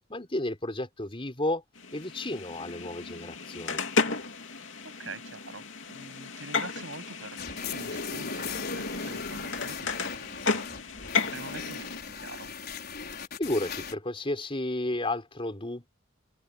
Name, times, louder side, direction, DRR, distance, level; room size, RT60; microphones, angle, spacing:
voice 1, 0.1-1.6 1.9-3.8 13.4-15.9, left 1 dB, 30° left, 4.3 m, -32 dB
sound 1, 1.8-12.0, left 4 dB, 75° left, 2.9 m, -33 dB
voice 2, 4.8-11.1 11.3-12.5, right 3 dB, 85° right, 7.8 m, -45 dB
sound 2, 7.4-13.9, left 6 dB, 55° left, 5.0 m, -39 dB
head